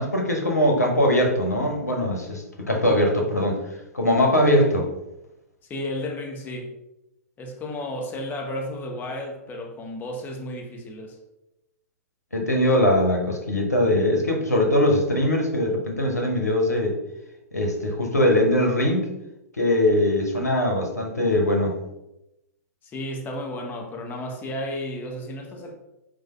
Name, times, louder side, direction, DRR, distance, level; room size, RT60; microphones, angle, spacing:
voice 1, 0.0-3.6 3.9-4.9 12.3-16.9 17.5-19.1 19.6-21.8, left 1 dB, 90° left, 1 dB, 1.0 m, -21 dB
voice 2, 5.7-6.7 7.4-11.2 22.8-25.7, left 1 dB, 20° left, 1 dB, 1.0 m, -33 dB
4.8 x 2.5 x 4.3 m, 0.89 s
figure-of-eight pair, 110°, 8 cm